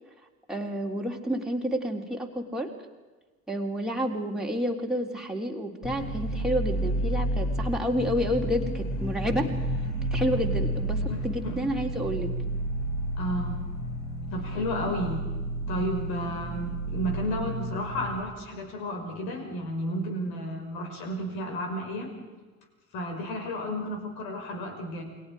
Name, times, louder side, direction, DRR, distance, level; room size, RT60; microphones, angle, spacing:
voice 1, 0.5-2.7 3.5-9.5 10.1-12.3, equal, ahead, -1 dB, 3.4 m, -29 dB
sound 1, 5.8-18.2, right 1 dB, 35° left, 6.5 m, -31 dB
voice 2, 11.1-11.6 13.2-13.6 14.3-15.2 15.7-22.1 22.9-25.0, equal, 60° left, 3 dB, 5.6 m, -32 dB
29.5 x 22.0 x 4.9 m, 1.3 s
figure-of-eight pair, 60°, 42 cm